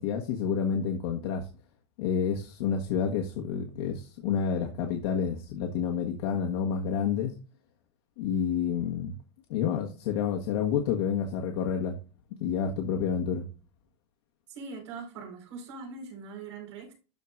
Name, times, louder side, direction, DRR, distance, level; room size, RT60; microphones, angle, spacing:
voice 1, 0.0-1.5 2.0-7.3 8.2-9.1 9.5-12.0 12.4-13.4, left 7 dB, 60° left, 1.4 m, -29 dB
voice 2, 14.5-16.9, right 4 dB, 80° right, 4.8 m, -42 dB
13.0 x 4.6 x 2.6 m
supercardioid pair, 180°, 15 cm